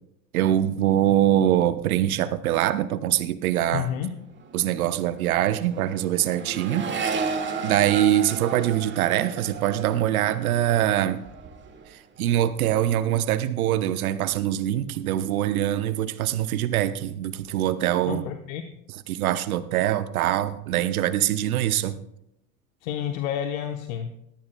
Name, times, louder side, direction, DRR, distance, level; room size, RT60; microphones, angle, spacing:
voice 1, 0.3-3.9 4.5-6.9 7.6-11.2 11.9-18.2 19.1-22.0, right 12 dB, 80° right, 12 dB, 0.9 m, -23 dB
voice 2, 3.7-4.1 18.0-18.6 22.8-24.2, left 9 dB, 65° left, 6 dB, 1.1 m, -30 dB
Accelerating revving vroom, 4.0-4.1 4.4-11.9 12.2-12.8, right 4 dB, 25° right, 2.0 m, -34 dB
19.0 x 13.5 x 2.3 m, 0.81 s
hypercardioid pair, 80°, 43 cm